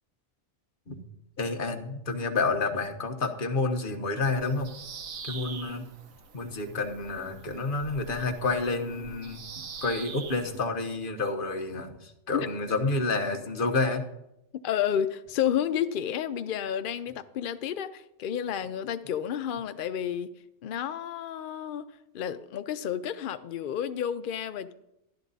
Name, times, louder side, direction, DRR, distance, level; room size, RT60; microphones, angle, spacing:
voice 1, 1.4-4.7 5.2-5.8 6.3-14.0, left 3 dB, 40° left, 4 dB, 1.2 m, -29 dB
Bird vocalization bird call bird song, 4.2-10.6, right 5 dB, 85° right, 1.4 m, -44 dB
voice 2, 14.6-20.3 20.6-21.9 22.1-24.7, left 9 dB, 65° left, 11 dB, 0.5 m, -31 dB
13.0 x 11.0 x 4.0 m, 0.85 s
omnidirectional pair, 1.4 m